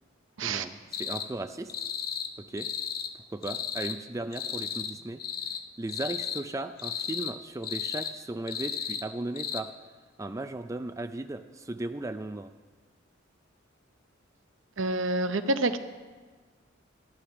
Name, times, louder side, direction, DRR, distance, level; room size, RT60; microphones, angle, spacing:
voice 1, 0.4-1.7 2.4-2.7 3.3-5.2 5.8-9.7 10.2-12.5, right 2 dB, 15° right, 8 dB, 0.4 m, -36 dB
sound 1, 0.9-1.3 1.7-2.3 2.6-3.1 3.4-4.0 4.3-4.9 5.2-5.6 5.9-6.4 6.8-7.3 7.6-8.1 8.5-9.0 9.4-9.6, left 8 dB, 50° left, 0.7 m, -34 dB
voice 2, 14.8-15.8, right 2 dB, 75° right, 9 dB, 0.8 m, -27 dB
12.0 x 11.5 x 5.9 m, 1.4 s
head